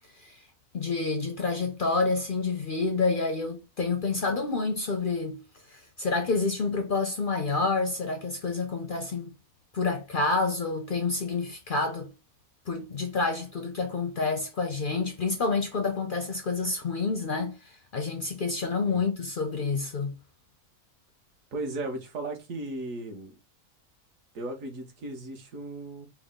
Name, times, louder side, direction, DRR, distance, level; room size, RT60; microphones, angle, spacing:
voice 1, 0.1-0.5 0.7-5.4 5.7-9.3 9.7-12.1 12.7-20.2, left 4 dB, 60° left, 0.5 m, -28 dB
voice 2, 21.5-23.4 24.3-26.1, right 2 dB, 65° right, 1.4 m, -36 dB
4.7 x 2.1 x 3.5 m
omnidirectional pair, 1.6 m